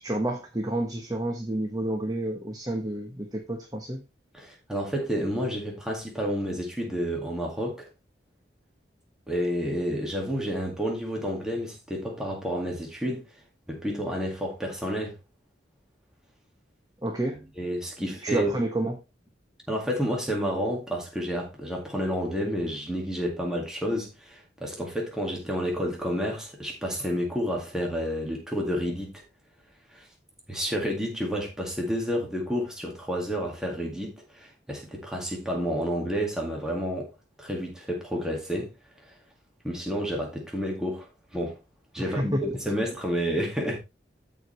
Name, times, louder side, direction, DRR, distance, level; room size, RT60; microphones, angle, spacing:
voice 1, 0.0-4.0 17.0-17.5 18.0-19.0 42.1-42.4, right 1 dB, 20° right, 1.1 m, -29 dB
voice 2, 4.3-7.9 9.3-13.4 13.7-15.2 17.6-18.5 19.7-29.2 29.9-30.1 30.5-37.1 37.4-39.2 39.6-41.6 41.9-43.8, equal, 5° right, 2.0 m, -30 dB
14.5 x 4.9 x 3.2 m
head